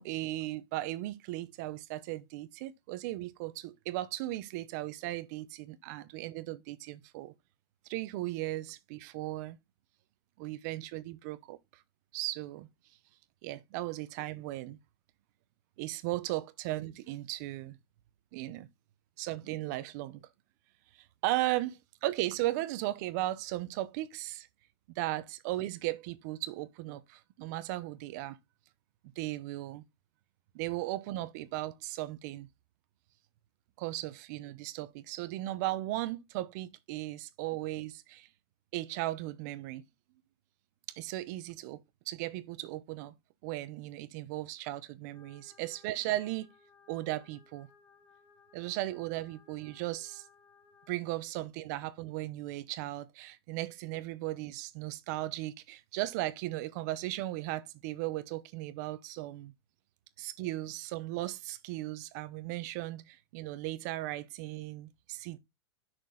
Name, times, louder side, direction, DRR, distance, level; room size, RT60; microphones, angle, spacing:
voice 1, 0.0-7.3 7.9-9.6 10.4-11.6 12.1-12.7 13.4-14.8 15.8-17.8 18.3-18.7 19.2-20.2 21.2-24.5 25.0-28.4 29.2-29.8 30.5-32.5 33.8-38.3 38.7-39.8 40.9-41.8 42.1-43.1 43.4-46.5 46.9-47.7 48.5-50.2 50.9-59.5 60.2-65.4, right 16 dB, 40° right, 0.9 m, -36 dB
sound 1, 45.1-50.9, left 5 dB, 10° left, 1.6 m, -63 dB
9.7 x 6.2 x 3.9 m
supercardioid pair, 165°, 14 cm